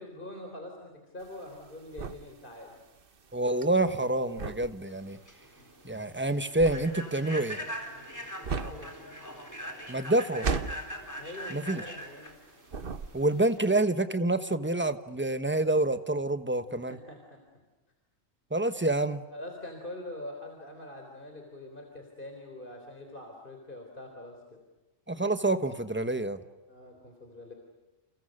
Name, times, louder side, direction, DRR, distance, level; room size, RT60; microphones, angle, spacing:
voice 1, 0.0-2.8 8.5-8.9 11.2-12.3 16.7-17.4 19.3-24.4 26.7-27.5, left 1 dB, 40° left, 3 dB, 4.1 m, -44 dB
sound 1, 1.2-12.4 12.7-13.5, right 5 dB, 45° right, 1.2 m, -37 dB
voice 2, 3.3-5.2 5.8-7.6 9.9-10.5 11.5-11.8 13.1-17.0 18.5-19.2 25.1-26.4, right 2 dB, 10° right, 11 dB, 1.1 m, -27 dB
Human voice / Train, 5.0-13.8, equal, 15° left, 4.1 m, -42 dB
30.0 x 29.5 x 6.6 m, 1.1 s
omnidirectional pair, 1.3 m